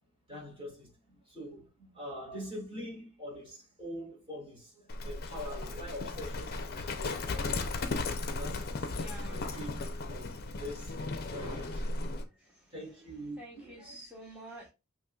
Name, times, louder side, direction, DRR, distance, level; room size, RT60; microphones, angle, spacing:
voice 1, 0.3-8.0 8.2-9.0 9.3-12.0 12.7-14.0, equal, 25° right, 2.5 m, -44 dB
Livestock farm animals working animals, 4.9-12.2, left 3 dB, 45° left, 0.6 m, -36 dB
voice 2, 8.9-9.4 13.4-14.7, right 1 dB, 5° right, 1.0 m, -48 dB
5.7 x 3.0 x 2.3 m
head